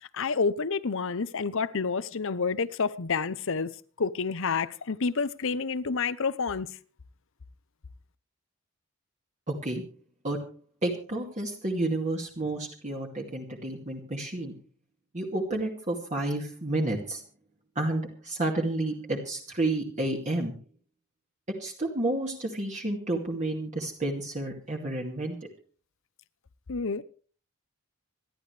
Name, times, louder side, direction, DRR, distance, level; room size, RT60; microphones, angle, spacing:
voice 1, 0.0-3.7 4.0-6.7 26.7-27.0, left 5 dB, 65° left, 0.8 m, -29 dB
voice 2, 9.5-9.8 10.2-10.4 10.8-14.5 15.1-17.2 17.8-20.6 21.6-25.4, right 2 dB, 35° right, 2.3 m, -30 dB
27.0 x 11.5 x 3.3 m
head